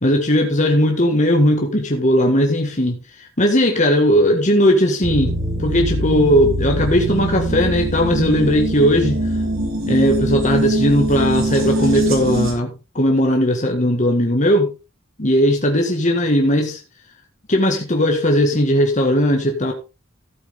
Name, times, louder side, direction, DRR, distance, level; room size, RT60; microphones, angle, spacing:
voice 1, 0.0-5.3 5.6-9.2 9.9-14.7 15.2-16.8 17.5-19.7, equal, 35° left, 2 dB, 1.9 m, -17 dB
sound 1, 5.0-12.5, right 1 dB, 80° right, 5.3 m, -22 dB
15.0 x 8.3 x 3.7 m, 0.30 s
head